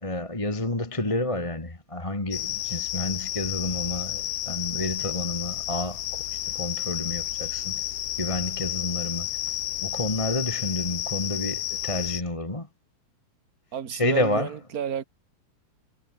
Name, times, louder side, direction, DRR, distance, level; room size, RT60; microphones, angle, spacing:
voice 1, 0.0-7.8 8.2-9.3 9.7-12.7 13.9-14.5, left 1 dB, 10° left, 2.1 m, -30 dB
sound 1, 2.3-12.2, left 13 dB, 65° left, 1.7 m, -31 dB
voice 2, 13.7-15.0, right 8 dB, 40° right, 1.5 m, -31 dB
omnidirectional pair, 3.5 m